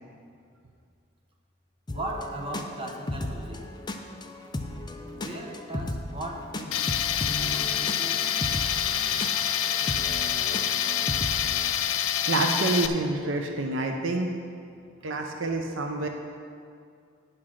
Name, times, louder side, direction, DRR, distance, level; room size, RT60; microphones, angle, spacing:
sound 1, 1.9-11.7, left 1 dB, 20° left, 0.5 m, -36 dB
voice 1, 1.9-3.7 5.2-6.8 7.2-8.2, right 1 dB, 30° right, 0 dB, 1.0 m, -37 dB
Tools, 6.7-12.9, left 9 dB, 75° left, 0.4 m, -27 dB
voice 2, 12.2-14.3 15.0-16.1, right 2 dB, 65° right, 3 dB, 0.7 m, -27 dB
9.3 x 5.8 x 6.3 m, 2.3 s
head